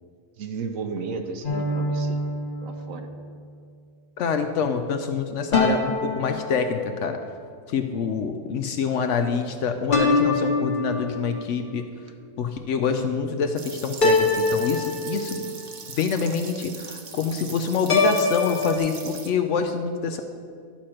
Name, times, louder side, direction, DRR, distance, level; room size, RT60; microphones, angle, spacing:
voice 1, 0.4-2.2 2.6-3.1, right 4 dB, 70° right, 6 dB, 1.1 m, -33 dB
sound 1, 1.4-3.1 5.5-7.2 9.9-11.4 14.0-15.6 17.9-18.8, left 3 dB, 35° left, 1.3 m, -24 dB
voice 2, 4.2-7.2 7.7-11.8 12.4-15.5 15.9-20.2, left 6 dB, 65° left, 7 dB, 0.8 m, -26 dB
sound 2, 13.6-19.3, right 5 dB, 50° right, 0.8 m, -40 dB
11.5 x 4.3 x 6.3 m, 2.2 s
omnidirectional pair, 1.5 m